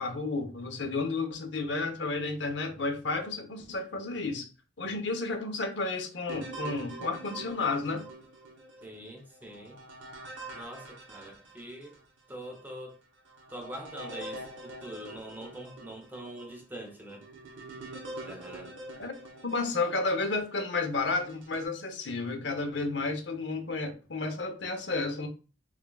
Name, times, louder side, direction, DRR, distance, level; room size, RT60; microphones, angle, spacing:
voice 1, 0.0-4.5 4.8-8.1 19.0-19.1 19.4-25.3, left 3 dB, 70° left, 0.8 m, -32 dB
sound 1, 6.3-12.0 12.6-12.7 13.3-20.5 21.1-21.7, right 2 dB, 85° right, 0.9 m, -45 dB
voice 2, 8.8-9.8 10.5-12.0 12.3-13.0 13.5-17.2 18.2-18.7, right 1 dB, 10° right, 0.6 m, -43 dB
5.9 x 2.3 x 2.3 m
head